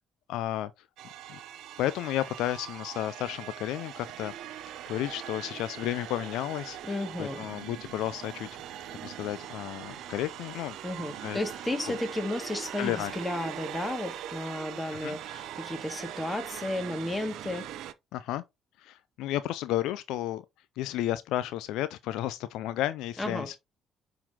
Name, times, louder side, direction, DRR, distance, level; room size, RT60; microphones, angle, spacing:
voice 1, 0.3-0.7 1.3-1.4 1.8-4.3 4.9-8.5 9.0-10.8 11.2-11.4 11.9-12.0 12.8-13.1 14.9-15.2 18.1-18.4 18.8-20.4 20.8-23.6, left 13 dB, 70° left, 0.4 m, -32 dB
sound 1, 1.0-17.9, right 11 dB, 65° right, 0.5 m, -41 dB
voice 2, 6.8-7.4 10.8-17.7 23.2-23.5, left 1 dB, 15° left, 2.0 m, -33 dB
9.9 x 3.9 x 2.8 m
hypercardioid pair, 50°, 0 cm